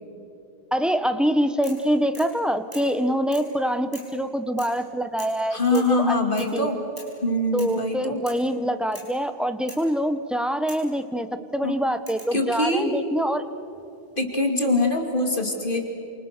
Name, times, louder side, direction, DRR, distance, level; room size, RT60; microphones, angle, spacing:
voice 1, 0.7-6.1 6.5-6.7 7.5-11.3 11.5-13.4, equal, ahead, 9 dB, 1.1 m, -25 dB
sound 1, 1.6-1.9 2.1-2.4 2.7-2.9 3.3-3.5 3.9-4.2 4.6-4.8 5.2-5.4 5.7-6.0 6.4-6.6 7.0-7.2 7.6-7.8 8.2-8.5 8.9-9.1 9.7-9.9 10.7-10.9 12.1-12.4 13.5-14.0, equal, 20° right, 6.9 m, -44 dB
voice 2, 5.5-6.8 7.2-8.2 11.6-11.8 12.3-12.9 14.2-15.8, left 2 dB, 55° left, 3 dB, 2.9 m, -23 dB
29.0 x 27.5 x 6.8 m, 2.9 s
omnidirectional pair, 1.1 m